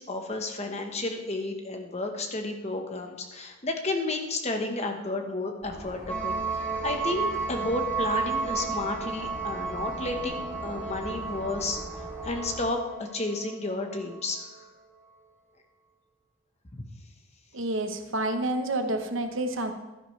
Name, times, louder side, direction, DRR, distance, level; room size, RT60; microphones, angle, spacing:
voice 1, 0.0-14.5, left 2 dB, 30° left, 4 dB, 1.1 m, -32 dB
sound 1, 5.6-12.7, equal, 25° right, 2.8 m, -42 dB
sound 2, 6.1-14.2, right 5 dB, 5° left, 1.6 m, -33 dB
voice 2, 17.5-19.7, right 1 dB, 65° right, 7 dB, 1.0 m, -29 dB
12.5 x 10.0 x 3.2 m, 1.1 s
head